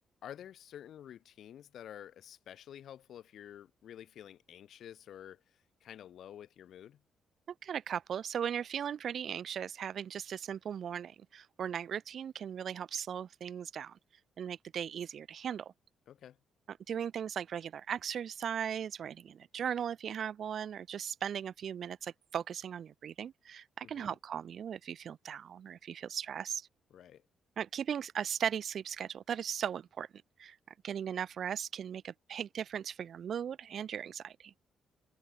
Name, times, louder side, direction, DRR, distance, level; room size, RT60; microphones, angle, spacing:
voice 1, 0.2-7.0 16.1-16.4 23.8-24.2 26.9-27.2, left 10 dB, 60° left, 3.6 m, -50 dB
voice 2, 7.6-14.0 14.4-15.7 16.7-26.7 27.6-30.1 30.4-30.6 30.8-34.5, right 8 dB, 55° right, 2.3 m, -38 dB
hypercardioid pair, 45°, 0 cm